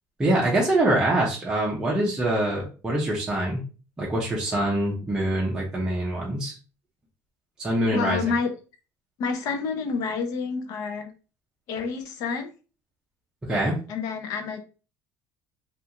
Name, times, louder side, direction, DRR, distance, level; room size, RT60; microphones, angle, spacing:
voice 1, 0.2-3.6 4.0-6.5 7.6-8.3 13.4-13.8, right 1 dB, 10° right, -4 dB, 0.5 m, -24 dB
voice 2, 7.9-8.5 9.2-11.1 11.7-12.5 13.9-14.6, left 5 dB, 50° left, 5 dB, 0.5 m, -28 dB
2.4 x 2.4 x 2.7 m, 0.35 s
cardioid pair, 175°, 7 cm